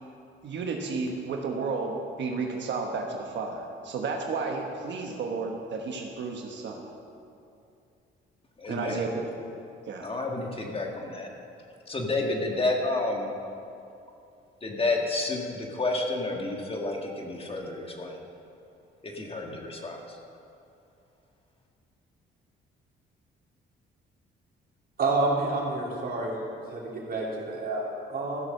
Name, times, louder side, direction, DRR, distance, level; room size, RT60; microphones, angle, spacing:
voice 1, 0.4-6.8 8.7-9.4 9.9-10.1, right 4 dB, 65° right, 1 dB, 1.2 m, -32 dB
voice 2, 8.6-9.0 10.0-11.3 11.9-13.3 14.6-18.2 19.1-20.0, left 2 dB, 30° left, 1 dB, 1.7 m, -30 dB
voice 3, 25.0-26.4 26.7-28.4, right 2 dB, 50° right, -3 dB, 2.9 m, -29 dB
13.5 x 6.3 x 6.5 m, 2.6 s
cardioid pair, 90°, 20 cm